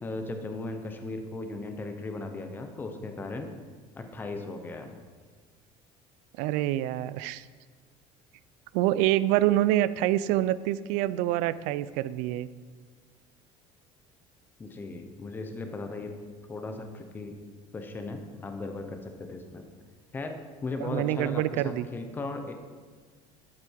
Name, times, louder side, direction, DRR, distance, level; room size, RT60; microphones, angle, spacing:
voice 1, 0.0-3.5 3.9-5.0 14.6-16.1 16.5-17.4 17.7-19.6 20.1-22.6, left 3 dB, 15° left, 6 dB, 0.9 m, -37 dB
voice 2, 6.4-7.5 8.7-12.5 20.8-21.9, right 14 dB, 85° right, 17 dB, 0.5 m, -26 dB
13.0 x 8.7 x 4.7 m, 1.5 s
cardioid pair, 170°, 13 cm